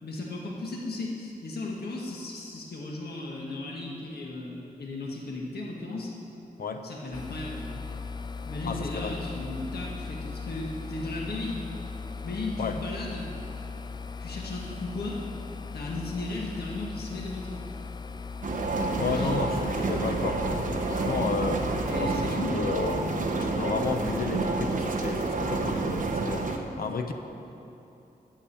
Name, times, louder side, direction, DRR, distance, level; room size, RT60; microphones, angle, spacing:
voice 1, 0.0-6.1 6.8-7.7 8.5-11.6 12.2-13.3 14.2-15.2 15.7-17.6 19.0-19.4 21.8-22.6, left 2 dB, 85° left, -2 dB, 1.6 m, -35 dB
sound 1, 7.1-22.3, left 4 dB, 25° left, 0.3 m, -38 dB
voice 2, 8.6-9.2 12.6-12.8 19.0-20.4 20.7-21.6 22.0-27.1, left 4 dB, 70° left, 6 dB, 0.9 m, -32 dB
sound 2, 18.4-26.6, right 3 dB, 55° right, 1.0 m, -29 dB
12.0 x 7.4 x 8.5 m, 2.9 s
wide cardioid pair, 175°, 16 cm